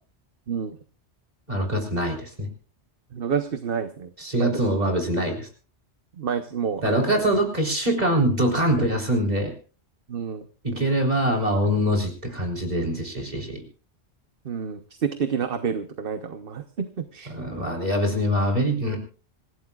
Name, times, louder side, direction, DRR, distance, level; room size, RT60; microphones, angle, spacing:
voice 1, 1.5-2.5 4.2-5.5 6.8-9.5 10.6-13.6 17.3-19.0, equal, 35° right, 2 dB, 4.0 m, -24 dB
voice 2, 3.1-4.1 4.4-4.7 6.2-7.3 10.1-10.5 14.4-17.3, right 6 dB, 55° right, 8 dB, 1.1 m, -29 dB
26.5 x 15.5 x 2.4 m, 0.38 s
omnidirectional pair, 1.2 m